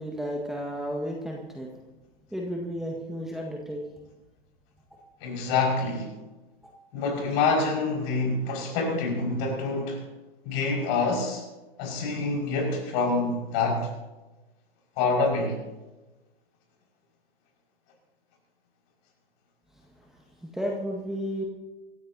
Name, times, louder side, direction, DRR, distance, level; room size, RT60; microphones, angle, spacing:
voice 1, 0.0-1.7 2.3-3.8 20.0-21.4, equal, ahead, 1.8 m, -33 dB
voice 2, 5.2-6.1 6.9-10.0 10.4-11.4 11.8-13.9 15.0-15.6, left 3 dB, 45° left, 5.8 m, -26 dB
26.0 x 14.5 x 2.9 m
figure-of-eight pair, 105°, 31 cm